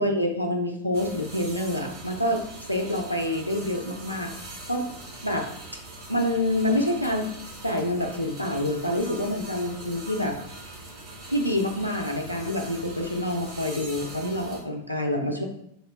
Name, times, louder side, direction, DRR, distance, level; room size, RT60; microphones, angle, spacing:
voice 1, 0.0-4.3 4.7-4.9 5.2-5.5 6.1-7.3 7.6-10.4 11.3-15.4, left 1 dB, 90° left, 2 dB, 0.3 m, -27 dB
sound 1, 0.9-14.6, right 2 dB, 40° right, 0.8 m, -42 dB
2.4 x 2.0 x 3.1 m, 0.73 s
figure-of-eight pair, 90°, 0 cm